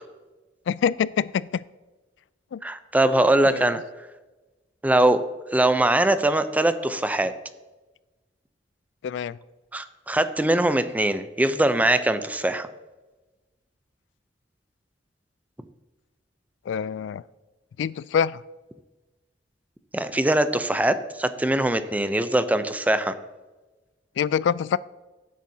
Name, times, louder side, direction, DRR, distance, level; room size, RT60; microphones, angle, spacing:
voice 1, 0.7-1.6 2.5-2.6 3.5-3.7 9.0-9.4 16.7-17.2 17.8-18.4 24.2-24.8, left 7 dB, 80° left, 20 dB, 0.3 m, -25 dB
voice 2, 2.6-3.8 4.8-5.2 5.5-7.3 9.7-12.7 19.9-23.1, right 1 dB, 10° right, 11 dB, 0.5 m, -22 dB
16.0 x 8.4 x 2.7 m, 1.2 s
head